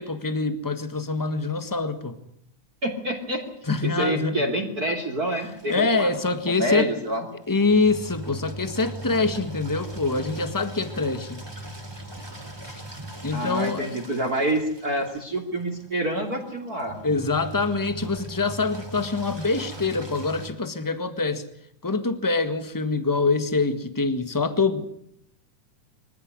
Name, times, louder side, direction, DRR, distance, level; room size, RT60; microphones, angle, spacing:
voice 1, 0.0-2.1 3.7-4.3 5.7-6.9 7.5-11.4 12.6-12.8 13.2-14.0 17.0-21.4 21.8-24.8, left 3 dB, 15° left, 10 dB, 0.8 m, -25 dB
voice 2, 2.8-3.4 3.8-6.1 6.5-7.3 13.3-17.0, right 1 dB, 30° right, 3 dB, 3.2 m, -27 dB
Engine, 5.3-20.5, right 1 dB, 10° right, 3.1 m, -40 dB
24.5 x 15.5 x 9.7 m, 0.71 s
omnidirectional pair, 3.4 m